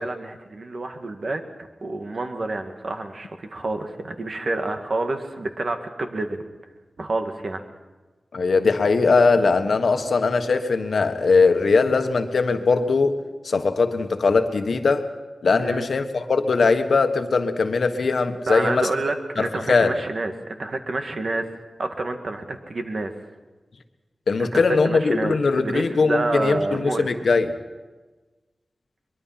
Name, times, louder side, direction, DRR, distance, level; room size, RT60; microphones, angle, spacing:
voice 1, 0.0-1.4 1.8-6.4 7.0-7.6 15.6-15.9 18.5-21.5 21.8-23.1 24.4-27.1, right 2 dB, 50° right, 5 dB, 1.9 m, -28 dB
voice 2, 8.3-13.2 13.4-15.1 15.4-18.9 19.4-19.9 24.3-27.5, left 4 dB, 70° left, 7 dB, 1.4 m, -20 dB
23.0 x 22.5 x 5.8 m, 1.3 s
wide cardioid pair, 125°, 0 cm